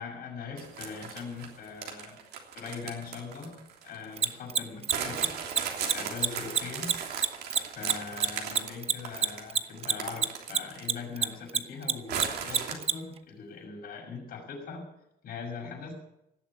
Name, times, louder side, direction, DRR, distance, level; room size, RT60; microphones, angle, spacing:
voice 1, 0.0-2.2 2.5-5.3 5.9-6.9 7.7-14.8 15.2-15.9, left 5 dB, 60° left, -1 dB, 6.3 m, -41 dB
sound 1, 0.6-4.3 4.9-11.0 11.3-11.4 12.1-12.7, right 7 dB, 70° right, 3.3 m, -37 dB
Mechanisms, 4.2-10.9 11.2-12.9, right 7 dB, 35° right, 0.8 m, -25 dB
18.0 x 8.1 x 8.5 m, 0.84 s
cardioid pair, 110°, 17 cm